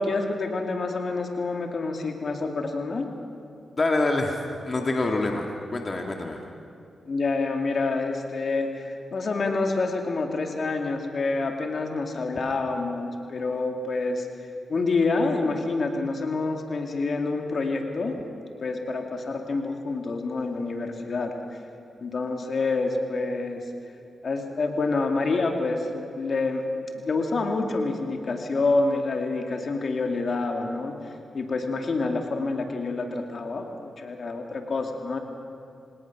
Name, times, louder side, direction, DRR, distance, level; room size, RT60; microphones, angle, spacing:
voice 1, 0.0-3.1 7.1-8.8 9.1-14.3 14.7-18.2 18.6-21.3 22.0-23.6 24.2-26.6 27.0-31.0 31.3-35.2, left 3 dB, 60° left, 3 dB, 2.4 m, -27 dB
voice 2, 3.8-6.4, left 2 dB, 45° left, 2 dB, 2.1 m, -26 dB
26.0 x 19.0 x 6.1 m, 2.5 s
supercardioid pair, 45°, 0 cm